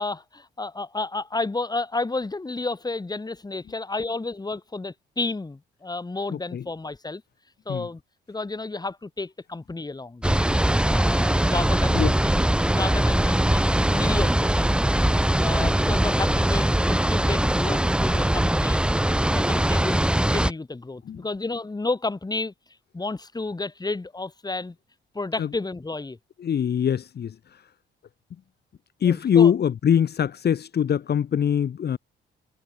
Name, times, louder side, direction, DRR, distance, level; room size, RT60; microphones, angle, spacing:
voice 1, 0.0-7.2 7.6-8.0 8.3-10.2 10.9-14.8 15.4-16.7 17.0-18.8 19.3-22.5 22.9-24.8 25.1-26.2 29.0-29.5, left 3 dB, 20° left, 4.8 m, -31 dB
voice 2, 6.3-6.6 7.7-7.9 11.9-12.2 15.6-15.7 21.1-21.2 25.4-25.5 26.4-27.6 29.0-32.0, left 8 dB, 55° left, 2.7 m, -23 dB
sound 1, 10.2-20.5, right 1 dB, 5° right, 1.4 m, -21 dB
cardioid pair, 90°, 20 cm